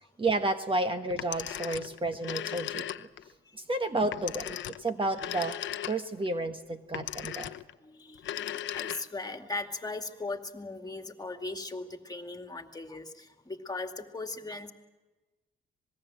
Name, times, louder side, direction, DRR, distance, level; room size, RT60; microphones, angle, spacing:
voice 1, 0.2-2.9 3.5-5.6 5.9-7.5, right 2 dB, 25° right, 7 dB, 1.2 m, -31 dB
Telephone, 1.1-3.3 4.1-6.3 6.9-7.7 8.2-9.3, left 11 dB, 70° left, 0.9 m, -37 dB
voice 2, 7.8-14.7, left 3 dB, 20° left, 5 dB, 2.3 m, -39 dB
26.0 x 20.0 x 7.6 m, 1.2 s
cardioid pair, 90°, 20 cm